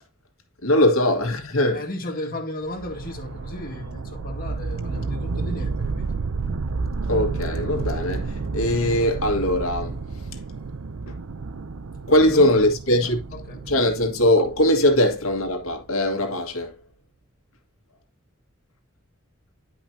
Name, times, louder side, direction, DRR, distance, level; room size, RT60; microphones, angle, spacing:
voice 1, 0.6-1.8 7.0-10.3 11.1-11.2 12.1-13.2 13.7-16.8, left 1 dB, 75° left, 1.9 m, -21 dB
voice 2, 1.7-6.1 12.1-12.7 13.0-13.8, left 1 dB, 45° left, 1.9 m, -34 dB
sound 1, 2.7-15.7, right 4 dB, 85° right, 0.6 m, -31 dB
10.5 x 5.5 x 2.8 m
head